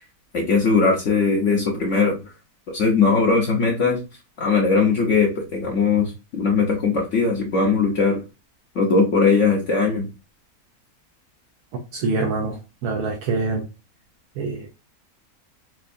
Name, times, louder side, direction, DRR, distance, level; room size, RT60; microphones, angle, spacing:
voice 1, 0.3-2.2 2.7-4.0 4.4-8.2 8.7-10.1, left 4 dB, 60° left, 1.1 m, -19 dB
voice 2, 11.9-13.6 14.4-14.7, right 3 dB, 85° right, 1.2 m, -25 dB
4.4 x 2.5 x 2.5 m
omnidirectional pair, 1.6 m